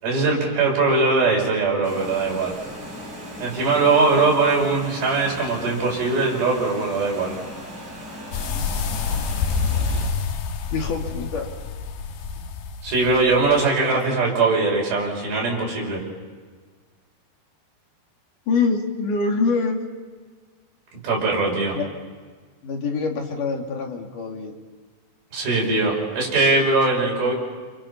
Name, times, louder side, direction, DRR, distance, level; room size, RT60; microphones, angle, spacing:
voice 1, 0.0-2.5 3.4-7.3 12.8-16.0 20.9-21.8 25.3-27.3, right 3 dB, 65° right, -2 dB, 7.9 m, -21 dB
sound 1, 1.8-10.1, equal, 45° right, 7.6 m, -38 dB
sound 2, 8.3-13.7, left 5 dB, 80° left, 3.4 m, -27 dB
voice 2, 8.5-9.3 9.8-10.1 10.7-11.5 12.4-12.5 18.5-19.8 21.5-21.9 22.6-24.5, left 4 dB, 55° left, 1 dB, 3.7 m, -26 dB
29.5 x 27.0 x 5.9 m, 1.5 s
omnidirectional pair, 4.7 m